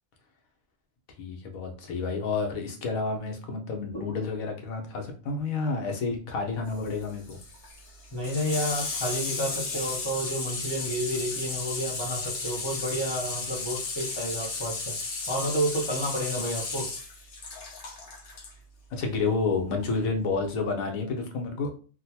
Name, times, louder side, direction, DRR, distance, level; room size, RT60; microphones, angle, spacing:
voice 1, 1.2-7.4 18.9-21.7, left 4 dB, 80° left, 4 dB, 1.2 m, -30 dB
Water tap faucet / Sink (filling or washing), 6.7-18.5 19.8-19.9, left 3 dB, 60° left, 1.1 m, -34 dB
voice 2, 8.1-15.0 15.3-16.9, equal, 40° left, -2 dB, 0.4 m, -30 dB
3.7 x 2.2 x 2.8 m, 0.38 s
omnidirectional pair, 1.5 m